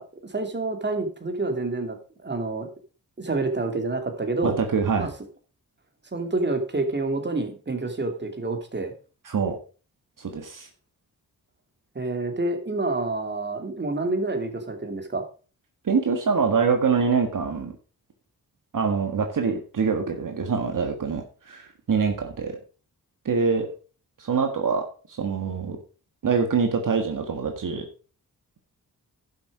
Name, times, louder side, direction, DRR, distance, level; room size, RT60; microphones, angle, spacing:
voice 1, 0.0-2.7 3.2-4.6 5.0-5.1 6.1-8.9 11.9-15.2, right 2 dB, 30° right, 5 dB, 2.6 m, -28 dB
voice 2, 4.4-5.1 9.3-9.6 10.2-10.7 15.8-17.7 18.7-22.6 23.3-23.7 24.2-25.8 26.2-27.9, right 5 dB, 60° right, 4 dB, 1.8 m, -25 dB
11.5 x 7.2 x 4.9 m, 0.37 s
cardioid pair, 80°, 35 cm